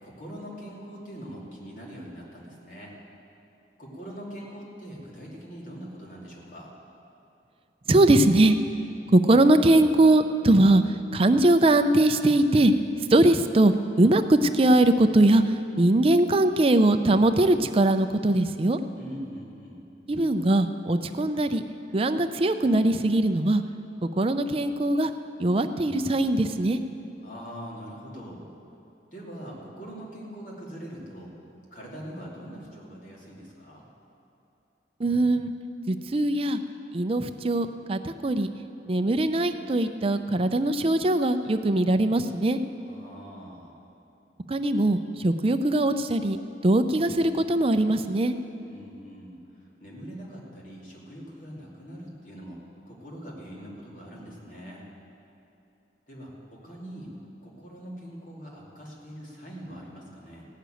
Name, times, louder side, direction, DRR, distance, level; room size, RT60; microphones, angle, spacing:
voice 1, 0.0-2.9 3.8-6.7 19.0-19.8 27.2-28.5 29.1-31.3 31.7-33.8 42.8-43.8 48.6-52.6 52.9-54.8 56.1-57.1 57.4-60.5, equal, 50° left, -4 dB, 2.9 m, -42 dB
voice 2, 7.9-8.6 9.1-10.8 11.1-12.7 13.1-15.4 15.8-18.8 20.1-21.6 21.9-23.6 24.0-25.1 25.4-26.8 35.0-35.5 35.9-36.6 36.9-38.5 38.8-42.6 44.5-46.4 46.6-48.3, right 1 dB, 35° right, 9 dB, 0.5 m, -21 dB
15.5 x 6.7 x 9.2 m, 2.7 s
head